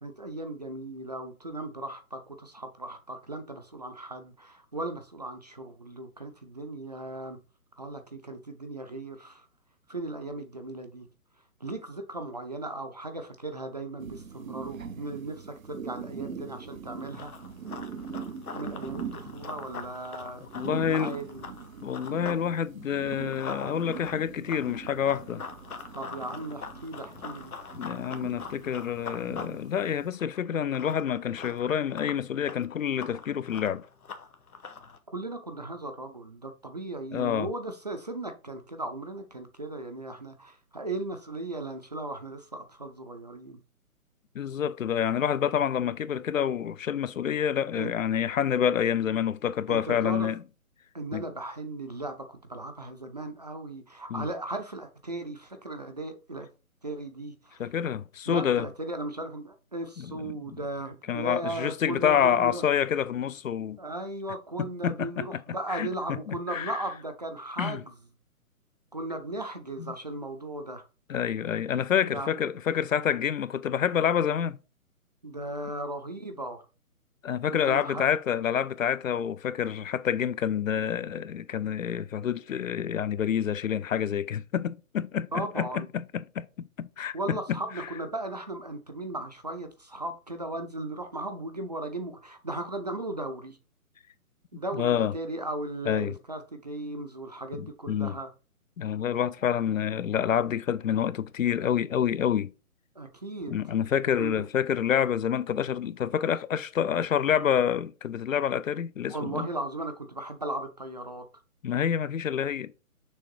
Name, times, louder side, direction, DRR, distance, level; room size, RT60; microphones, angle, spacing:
voice 1, 0.0-7.4 7.8-9.5 9.9-11.1 11.6-17.3 18.6-21.5 25.9-27.5 35.1-43.6 47.7-47.9 49.7-50.3 50.9-56.5 56.8-57.7 58.3-62.7 63.8-67.9 68.9-70.9 72.1-72.3 75.2-76.6 77.5-78.1 85.3-85.9 87.1-93.6 94.5-98.3 103.0-103.6 104.2-104.5 109.1-111.2, right 2 dB, 30° right, 0.5 m, -37 dB
sound 1, 14.0-30.1, right 6 dB, 65° right, 0.9 m, -42 dB
Run, 17.0-22.4 22.8-35.0, left 5 dB, 85° left, 1.2 m, -43 dB
voice 2, 20.5-21.1 21.8-25.4 27.8-33.8 37.1-37.5 44.3-50.4 51.1-51.2 54.1-54.3 57.6-58.7 60.0-60.2 61.1-63.8 64.8-65.4 65.7-66.7 67.6-67.8 69.8-69.9 71.1-74.6 77.2-87.6 94.8-95.1 95.9-96.1 97.6-98.2 98.8-102.5 103.5-109.5 111.6-112.7, left 8 dB, 65° left, 0.6 m, -28 dB
6.5 x 3.4 x 4.6 m
hypercardioid pair, 160°, 43 cm